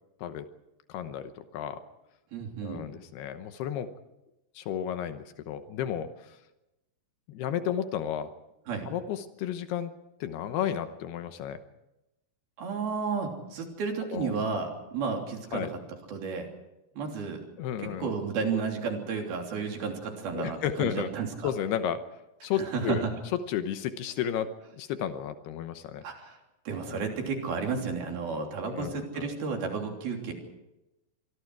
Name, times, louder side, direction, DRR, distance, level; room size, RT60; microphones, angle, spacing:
voice 1, 0.9-1.8 2.6-3.9 4.6-6.4 7.3-8.3 8.9-9.9 10.2-11.6 14.1-14.3 15.5-15.7 17.6-18.1 18.5-18.6 20.3-21.1 21.4-22.0 22.4-23.1 23.5-26.0 26.8-27.1 28.6-29.3, left 9 dB, 80° left, 9 dB, 3.0 m, -33 dB
voice 2, 2.3-2.8 8.7-8.9 12.6-15.7 16.1-16.5 16.9-17.4 17.8-21.5 22.5-23.1 26.0-26.4 26.7-30.3, right 5 dB, 70° right, 2 dB, 5.0 m, -32 dB
26.0 x 23.5 x 4.8 m, 0.93 s
omnidirectional pair, 4.5 m